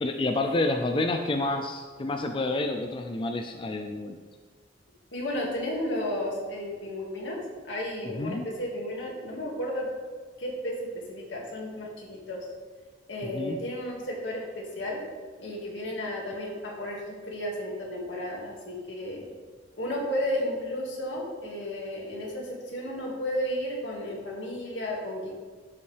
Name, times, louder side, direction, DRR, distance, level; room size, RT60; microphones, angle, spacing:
voice 1, 0.0-4.2 8.1-8.4 13.2-13.6, left 2 dB, 30° left, 5 dB, 0.4 m, -29 dB
voice 2, 5.1-7.4 7.6-9.9 10.4-12.4 13.1-15.0 15.4-19.2 19.8-25.3, left 1 dB, 85° left, -2 dB, 2.0 m, -33 dB
11.5 x 5.3 x 3.4 m, 1.4 s
head